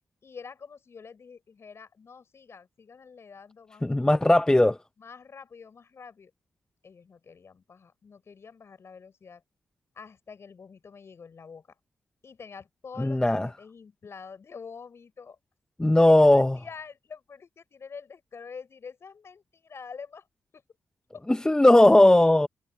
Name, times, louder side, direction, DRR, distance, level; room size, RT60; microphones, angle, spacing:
voice 1, 0.2-4.2 5.0-6.3 6.8-9.4 9.9-11.8 12.2-15.4 16.0-20.3 20.5-20.6 21.1-21.2, left 5 dB, 50° left, 5.8 m, -46 dB
voice 2, 3.8-4.8 13.0-13.5 15.8-16.5 21.3-22.5, left 1 dB, 10° left, 0.6 m, -18 dB
hypercardioid pair, 45°, 6 cm